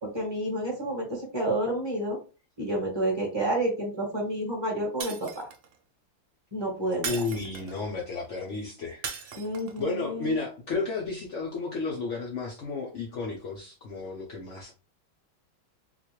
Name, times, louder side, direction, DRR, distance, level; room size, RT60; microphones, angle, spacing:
voice 1, 0.0-2.2 2.6-5.5 6.5-7.1 9.4-10.3, right 1 dB, 15° right, 1.1 m, -29 dB
Shatter, 5.0-5.7 7.0-7.9 9.0-9.8, right 6 dB, 80° right, 1.4 m, -37 dB
voice 2, 7.0-9.4 9.8-14.7, left 3 dB, 75° left, 0.6 m, -33 dB
4.0 x 2.3 x 3.0 m
omnidirectional pair, 2.0 m